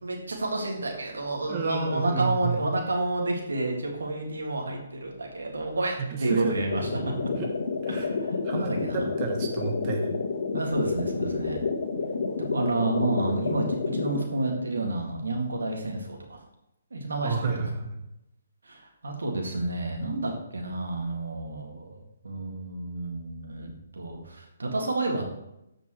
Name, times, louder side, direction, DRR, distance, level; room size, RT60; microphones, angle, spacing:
voice 1, 0.0-7.1 8.0-9.0 10.5-11.6 12.4-16.4 16.9-17.7 18.6-25.3, right 2 dB, 90° right, 1 dB, 2.1 m, -30 dB
voice 2, 1.5-2.6 6.1-6.6 7.3-7.5 7.8-8.1 8.4-10.1 17.2-18.0, right 4 dB, 30° right, 2 dB, 1.1 m, -31 dB
sound 1, 6.7-14.2, left 4 dB, 60° left, 1.2 m, -30 dB
14.0 x 5.2 x 3.2 m, 0.83 s
hypercardioid pair, 155°, 0 cm